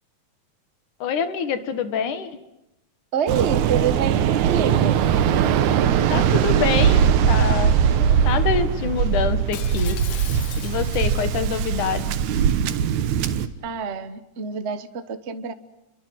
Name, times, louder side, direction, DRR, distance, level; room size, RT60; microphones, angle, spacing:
voice 1, 1.0-2.3 6.1-10.0 10.6-12.0, left 7 dB, 90° left, 11 dB, 3.2 m, -26 dB
voice 2, 3.1-5.0 13.6-15.5, right 7 dB, 40° right, 10 dB, 0.9 m, -27 dB
Waves surf, 3.3-13.5, right 8 dB, 75° right, 2.6 m, -20 dB
Shatter, 9.5-11.3 11.8-12.1, left 9 dB, 55° left, 2.2 m, -38 dB
30.0 x 23.5 x 7.7 m, 0.89 s
omnidirectional pair, 3.4 m